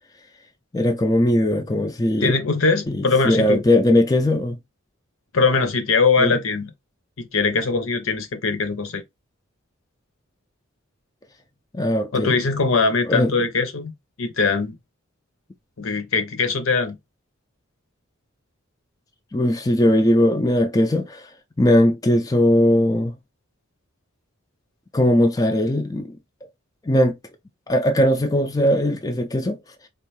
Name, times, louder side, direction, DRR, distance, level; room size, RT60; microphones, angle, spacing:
voice 1, 0.7-2.3 2.9-4.6 6.2-6.3 11.7-12.4 13.1-13.3 19.3-21.3 21.6-23.2 24.9-26.2 26.9-27.2 27.7-29.6, left 1 dB, 15° left, 0.4 m, -19 dB
voice 2, 2.2-3.6 5.3-6.7 7.2-9.0 12.1-13.9 14.2-14.7 15.8-17.0, left 4 dB, 65° left, 0.8 m, -21 dB
4.4 x 2.5 x 3.1 m
head